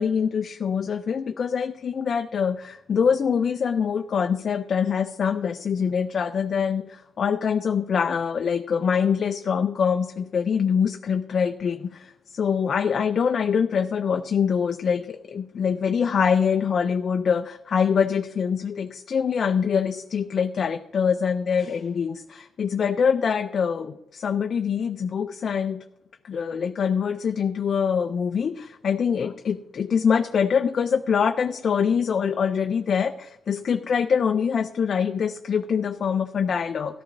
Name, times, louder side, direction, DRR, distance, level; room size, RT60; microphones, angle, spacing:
voice 1, 0.0-25.8 26.2-37.0, left 6 dB, 50° left, 7 dB, 0.5 m, -24 dB
14.0 x 12.5 x 2.6 m, 0.93 s
cardioid pair, 90°, 0 cm